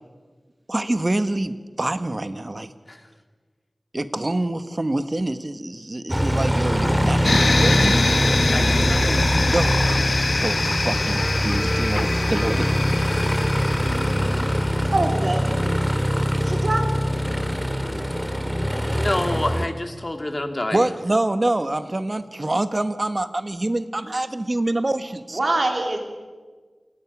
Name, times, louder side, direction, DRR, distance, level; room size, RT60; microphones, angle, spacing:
voice 1, 0.7-2.7 3.9-8.5 9.5-12.7 20.7-25.4, right 2 dB, 40° right, 10 dB, 1.3 m, -26 dB
Aircraft, 6.1-19.7, equal, ahead, 2.0 m, -22 dB
sound 1, 7.2-14.8, left 3 dB, 65° left, 1.2 m, -25 dB
voice 2, 8.5-9.4 18.9-20.9, left 1 dB, 35° left, 5 dB, 2.4 m, -28 dB
sound 2, 8.8-14.9, equal, 15° left, 2.6 m, -35 dB
voice 3, 14.9-15.4 16.4-17.1 25.3-26.0, right 2 dB, 60° right, 2 dB, 3.4 m, -24 dB
28.0 x 17.0 x 6.1 m, 1.4 s
wide cardioid pair, 55°, 0 cm